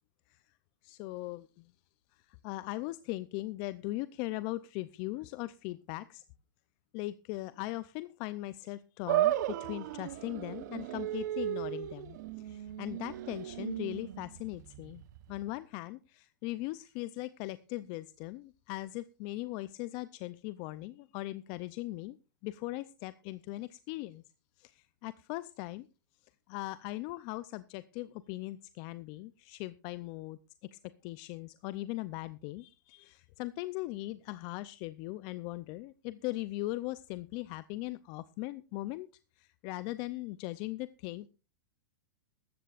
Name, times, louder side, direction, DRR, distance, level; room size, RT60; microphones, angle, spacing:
voice 1, 0.8-1.5 2.4-6.2 6.9-12.2 12.4-15.0 15.3-22.2 22.4-24.2 24.6-25.9 26.5-30.4 30.7-39.1 39.4-41.3, left 18 dB, 45° left, 15 dB, 0.5 m, -39 dB
sound 1, 9.1-15.5, right 14 dB, 60° right, 0.8 m, -35 dB
18.0 x 13.5 x 2.5 m, 0.32 s
hypercardioid pair, 130°, 11 cm